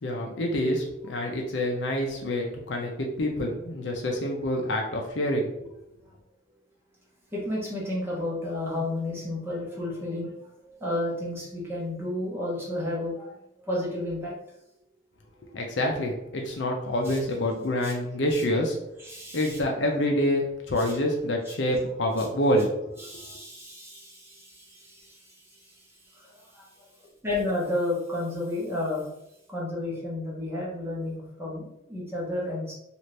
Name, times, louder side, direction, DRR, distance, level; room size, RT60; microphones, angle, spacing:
voice 1, 0.0-5.5 15.5-18.8 19.3-22.7, left 1 dB, 60° left, 1 dB, 0.6 m, -27 dB
voice 2, 7.3-10.3 10.6-13.3 13.7-14.3 17.0-17.2 17.8-17.9 18.3-18.4 19.0-19.6 23.0-25.3 25.5-25.7 26.1-26.7 27.2-29.1 29.5-32.7, left 1 dB, 10° right, -5 dB, 0.8 m, -32 dB
2.8 x 2.5 x 3.2 m, 0.82 s
head